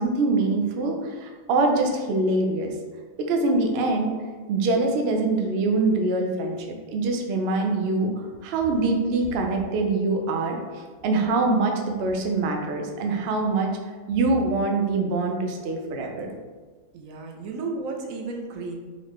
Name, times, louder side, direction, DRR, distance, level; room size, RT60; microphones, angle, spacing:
voice 1, 0.0-2.7 3.2-4.1 4.5-6.6 6.9-8.1 8.4-10.6 11.0-13.7 14.1-16.3, right 3 dB, 60° right, 2 dB, 0.7 m, -24 dB
voice 2, 16.9-18.8, right 3 dB, 80° right, 2 dB, 1.0 m, -33 dB
4.0 x 3.2 x 3.0 m, 1.4 s
omnidirectional pair, 1.4 m